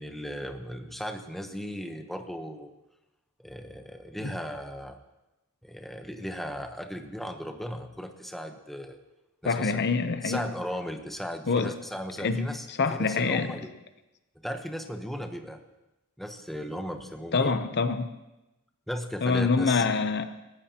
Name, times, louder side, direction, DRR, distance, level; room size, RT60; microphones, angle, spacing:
voice 1, 0.0-2.7 3.4-5.0 5.6-9.0 9.4-9.8 10.2-13.7 14.4-15.6 16.2-17.6 18.9-19.8, equal, ahead, 5 dB, 0.9 m, -36 dB
voice 2, 9.4-10.4 11.5-11.7 12.2-13.6 17.3-18.1 19.2-20.2, left 4 dB, 50° left, 9 dB, 0.7 m, -26 dB
26.5 x 15.0 x 2.9 m, 0.98 s
head